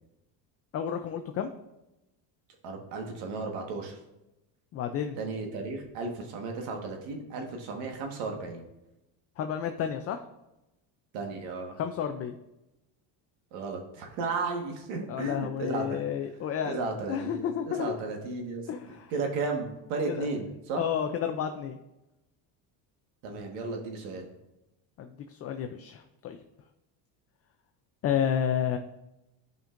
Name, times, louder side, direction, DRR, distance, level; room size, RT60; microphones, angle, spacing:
voice 1, 0.7-1.5 4.7-5.2 9.4-10.2 11.8-12.4 15.1-16.8 17.1-17.9 18.7-19.1 20.1-20.3 20.8-21.8 25.0-26.4 28.0-28.8, left 8 dB, 35° left, 6 dB, 0.4 m, -31 dB
voice 2, 2.6-4.0 5.2-8.6 11.1-11.8 13.5-16.0 16.6-18.7 19.1-20.8 23.2-24.3, right 3 dB, 90° right, 3 dB, 1.6 m, -34 dB
12.0 x 5.2 x 2.5 m, 0.93 s
cardioid pair, 130°, 47 cm